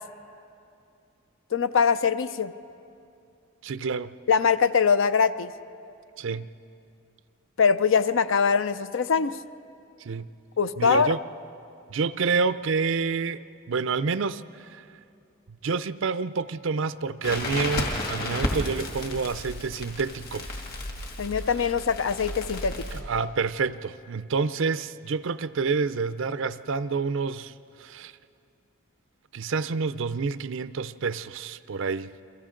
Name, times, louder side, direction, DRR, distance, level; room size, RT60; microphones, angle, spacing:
voice 1, 1.5-2.5 4.3-5.5 7.6-9.4 10.6-11.1 21.2-22.8, left 6 dB, 65° left, 13 dB, 0.5 m, -22 dB
voice 2, 3.6-4.1 6.2-6.5 10.0-10.3 10.8-11.2 11.9-14.8 15.6-20.6 22.9-28.1 29.3-32.1, right 4 dB, 60° right, 15 dB, 0.5 m, -28 dB
Crackle, 17.2-23.0, left 1 dB, 45° left, 2.4 m, -33 dB
30.0 x 23.5 x 3.8 m, 2.6 s
head